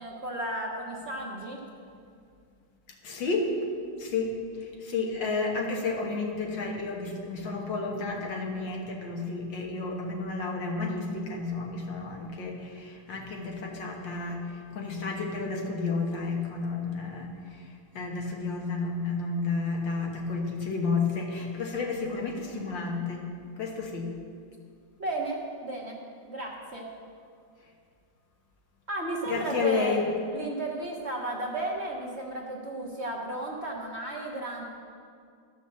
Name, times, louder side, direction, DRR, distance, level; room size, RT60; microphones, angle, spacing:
voice 1, 0.0-1.6 25.0-26.0 26.3-26.9 28.9-30.0 30.3-34.6, right 2 dB, 40° right, -2 dB, 1.3 m, -34 dB
voice 2, 3.0-3.5 4.0-23.3 23.6-24.1 29.3-30.1, left 4 dB, 75° left, 0 dB, 2.1 m, -31 dB
12.5 x 6.1 x 7.0 m, 2.3 s
omnidirectional pair, 2.1 m